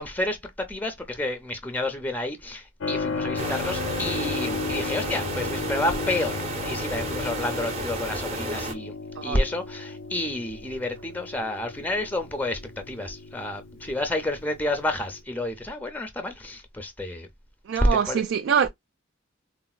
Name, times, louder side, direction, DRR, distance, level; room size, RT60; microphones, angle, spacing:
voice 1, 0.0-6.4 6.6-8.9 9.2-17.3 18.1-18.2, left 1 dB, 10° left, 0.4 m, -30 dB
Keyboard (musical), 2.8-15.2, left 4 dB, 80° left, 0.5 m, -35 dB
sound 1, 3.4-8.7, right 2 dB, 30° right, 0.6 m, -32 dB
voice 2, 17.7-18.7, right 7 dB, 70° right, 0.3 m, -24 dB
4.0 x 2.1 x 2.2 m
head